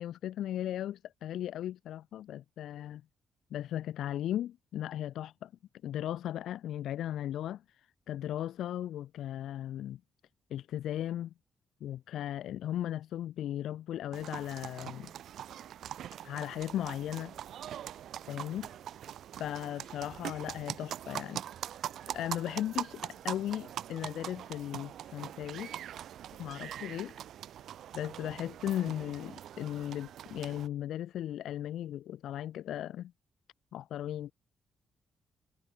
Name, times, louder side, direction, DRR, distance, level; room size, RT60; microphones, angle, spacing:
voice 1, 0.0-3.0 3.5-5.5 5.8-10.0 10.5-11.3 11.8-15.1 16.2-17.3 18.3-18.7 19.4-21.4 22.1-25.7 26.4-27.2 27.9-33.1 33.7-34.3, left 12 dB, 85° left, 0.9 m, -37 dB
sound 1, 14.1-30.7, right 10 dB, 70° right, 0.5 m, -42 dB
wide cardioid pair, 170°, 0 cm